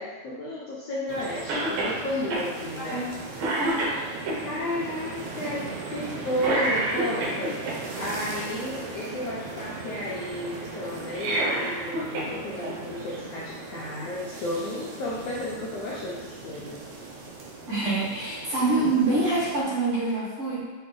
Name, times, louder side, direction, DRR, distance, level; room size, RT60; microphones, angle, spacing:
voice 1, 0.0-3.0 4.4-7.6 8.0-16.8, left 1 dB, 80° left, -6 dB, 1.4 m, -33 dB
sound 1, 1.1-19.6, right 3 dB, 70° right, 1.7 m, -39 dB
Cough, 1.5-2.0 2.3-2.5 2.9-3.1 3.4-4.4 6.4-7.7 11.0-12.3 12.6-12.7 13.8-13.9, right 1 dB, 90° right, 2.4 m, -27 dB
voice 2, 2.8-3.1 3.5-3.8 17.7-20.6, right 2 dB, 55° right, -9 dB, 1.9 m, -26 dB
6.4 x 2.2 x 3.8 m, 1.4 s
omnidirectional pair, 3.5 m